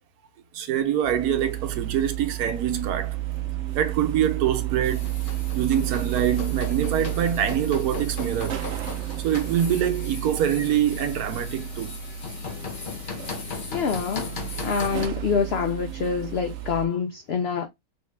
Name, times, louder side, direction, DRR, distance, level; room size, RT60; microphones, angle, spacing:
voice 1, 0.5-3.2 3.7-5.1 5.5-8.7 9.2-11.9, right 9 dB, 75° right, 1.2 m, -25 dB
sound 1, 1.0-16.9, right 12 dB, 60° right, 0.8 m, -32 dB
sound 2, 4.8-15.1, left 4 dB, 45° left, 0.8 m, -38 dB
voice 2, 13.7-17.7, left 6 dB, 90° left, 0.5 m, -26 dB
3.5 x 2.6 x 3.2 m
omnidirectional pair, 1.7 m